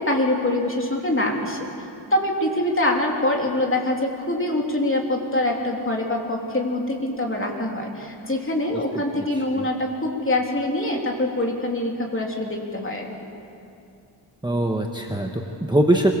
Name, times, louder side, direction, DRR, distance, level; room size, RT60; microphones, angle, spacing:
voice 1, 0.0-1.6 2.1-13.1, left 1 dB, 25° left, 0 dB, 3.3 m, -24 dB
voice 2, 9.3-9.6 14.4-16.1, right 1 dB, 10° right, 1 dB, 1.3 m, -22 dB
25.0 x 23.0 x 7.6 m, 2.6 s
wide cardioid pair, 125°, 47 cm